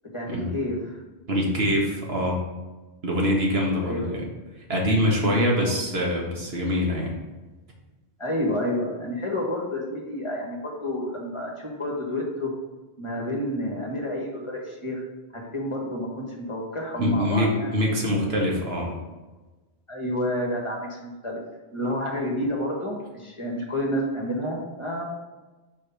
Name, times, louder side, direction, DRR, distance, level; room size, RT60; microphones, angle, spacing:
voice 1, 0.1-1.0 3.8-4.2 5.3-5.8 8.2-12.5 13.0-15.0 15.3-17.7 19.9-21.4 21.7-25.1, left 1 dB, 30° left, -1 dB, 1.3 m, -29 dB
voice 2, 1.3-2.4 3.0-4.2 4.7-7.1 17.0-18.9, equal, 70° right, -1 dB, 1.7 m, -24 dB
5.2 x 5.0 x 5.5 m, 1.2 s
omnidirectional pair, 1.1 m